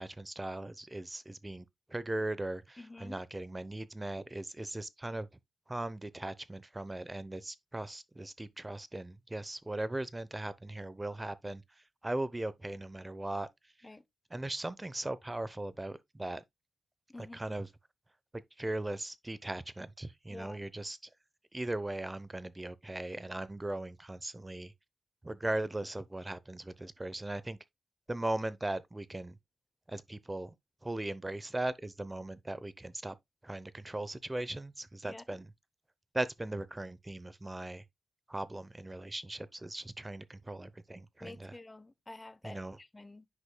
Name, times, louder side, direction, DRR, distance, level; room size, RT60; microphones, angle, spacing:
voice 1, 0.0-5.3 5.7-11.6 12.0-13.5 14.3-16.4 17.2-17.7 18.3-21.0 21.5-24.7 25.2-27.6 28.1-29.4 29.9-30.5 30.8-33.2 33.4-35.5 36.1-37.8 38.3-41.5 42.4-42.8, right 1 dB, 15° right, 0.7 m, -38 dB
voice 2, 2.8-3.2 13.8-14.0 17.1-17.5 20.3-20.7 35.1-35.2 41.2-43.3, left 2 dB, 20° left, 0.7 m, -49 dB
9.8 x 5.3 x 2.2 m
cardioid pair, 90°, 0 cm